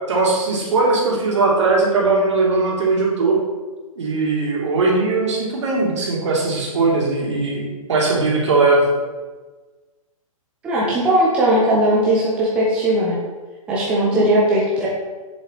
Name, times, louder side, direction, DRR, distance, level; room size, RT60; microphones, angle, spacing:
voice 1, 0.1-3.4 4.0-7.6 7.9-8.8, right 3 dB, 55° right, -3 dB, 2.7 m, -19 dB
voice 2, 10.6-13.2 13.7-14.9, right 1 dB, 5° right, -6 dB, 0.8 m, -18 dB
7.9 x 7.0 x 4.2 m, 1.3 s
hypercardioid pair, 175°, 18 cm